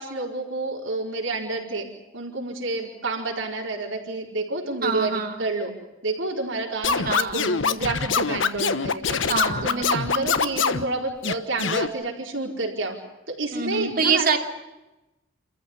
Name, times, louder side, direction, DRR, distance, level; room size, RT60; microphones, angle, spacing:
voice 1, 0.0-1.9 2.1-5.7 6.0-9.2 9.6-13.0 13.3-14.4, right 2 dB, 70° right, -1 dB, 4.7 m, -29 dB
voice 2, 4.8-5.5 7.0-7.5 9.3-10.0 13.5-14.4, right 5 dB, 45° right, 5 dB, 2.8 m, -25 dB
Scratching (performance technique), 6.8-10.8 11.2-11.9, left 5 dB, 65° left, 1.2 m, -24 dB
28.5 x 14.5 x 9.8 m, 1.0 s
head